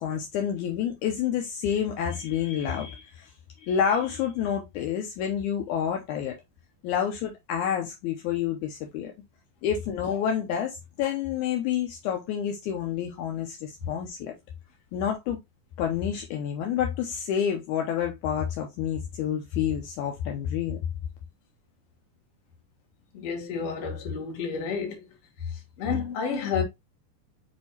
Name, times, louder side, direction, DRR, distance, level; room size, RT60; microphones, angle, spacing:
voice 1, 0.0-3.3 3.6-6.4 6.8-9.1 9.6-14.3 14.9-15.4 15.8-20.8, left 8 dB, 80° left, 2.0 m, -28 dB
voice 2, 23.1-25.1 25.4-26.6, left 6 dB, 55° left, 1.9 m, -30 dB
6.3 x 2.7 x 2.7 m
omnidirectional pair, 3.8 m